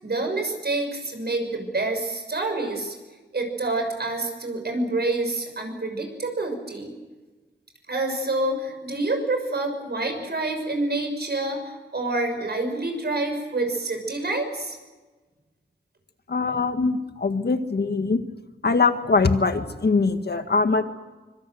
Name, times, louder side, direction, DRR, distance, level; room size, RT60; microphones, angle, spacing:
voice 1, 0.0-2.9 3.3-6.9 7.9-14.8, right 2 dB, 60° right, 5 dB, 6.3 m, -27 dB
voice 2, 16.3-18.2 18.6-20.8, left 4 dB, 60° left, 8 dB, 1.8 m, -22 dB
25.0 x 24.5 x 7.9 m, 1.2 s
wide cardioid pair, 95°, 19 cm